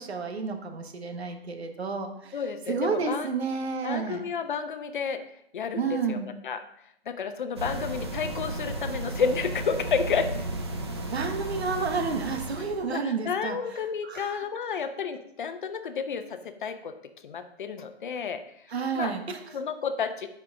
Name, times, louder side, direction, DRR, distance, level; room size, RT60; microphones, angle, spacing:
voice 1, 0.0-2.4 2.7-4.3 5.7-6.3 11.1-13.6 14.0-14.4 18.7-19.6, right 5 dB, 90° right, 5 dB, 1.3 m, -31 dB
voice 2, 2.3-3.3 3.8-5.2 5.5-6.2 6.4-6.6 7.1-10.4 12.9-16.9 17.2-18.4 19.0-19.1 19.5-20.3, left 6 dB, 50° left, 9 dB, 0.7 m, -31 dB
sound 1, 7.6-12.8, right 1 dB, 25° right, 0.5 m, -34 dB
7.8 x 5.7 x 3.6 m, 0.73 s
hypercardioid pair, 170°, 31 cm